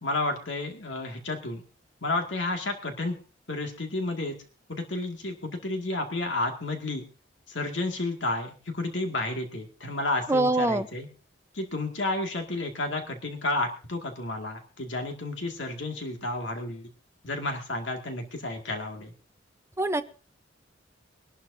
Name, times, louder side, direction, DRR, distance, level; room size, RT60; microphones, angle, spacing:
voice 1, 0.0-1.6 2.0-3.2 3.5-4.4 4.7-7.0 7.5-11.1 11.5-16.9 17.2-19.1, left 2 dB, 75° left, 4 dB, 2.1 m, -31 dB
voice 2, 10.3-10.9 19.8-20.0, right 2 dB, 15° right, 9 dB, 0.7 m, -23 dB
23.5 x 11.5 x 2.7 m, 0.36 s
head